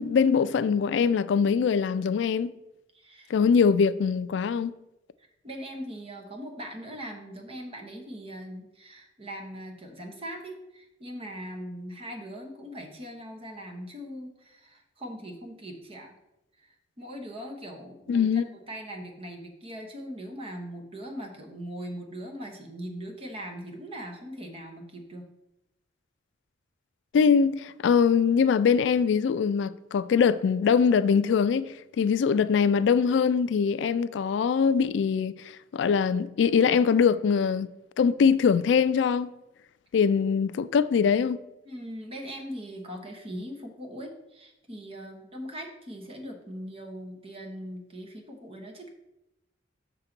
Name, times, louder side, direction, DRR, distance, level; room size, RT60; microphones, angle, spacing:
voice 1, 0.0-2.5 3.3-4.7 18.1-18.4 27.1-37.7 38.0-39.3 39.9-41.4, left 6 dB, 65° left, 0.3 m, -23 dB
voice 2, 2.9-3.6 5.2-16.2 16.6-25.3 41.6-48.9, equal, 30° right, 1.0 m, -40 dB
6.5 x 3.9 x 5.9 m
head